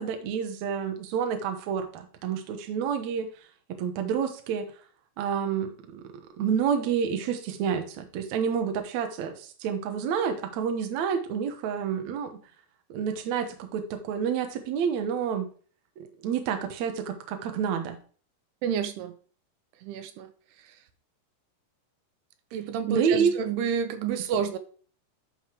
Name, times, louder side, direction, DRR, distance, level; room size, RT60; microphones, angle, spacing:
voice 1, 0.0-3.3 3.7-4.7 5.2-6.0 6.4-12.4 12.9-15.5 16.0-18.0 22.9-23.3 24.2-24.3, right 7 dB, 65° right, 1.9 m, -29 dB
voice 2, 18.6-19.2 19.8-20.3 22.5-24.6, right 7 dB, 90° right, 2.9 m, -29 dB
11.5 x 5.6 x 3.0 m
omnidirectional pair, 4.6 m